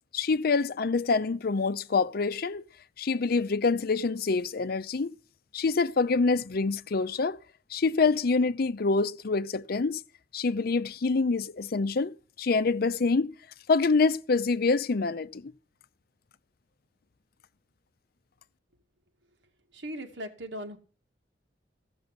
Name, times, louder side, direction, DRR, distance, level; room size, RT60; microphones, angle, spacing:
voice 1, 0.1-2.6 3.0-5.1 5.5-7.4 7.7-10.0 10.3-13.3 13.7-15.5, left 4 dB, 55° left, 0.6 m, -26 dB
voice 2, 19.7-20.8, equal, 80° right, 2.0 m, -38 dB
14.5 x 6.1 x 8.0 m
head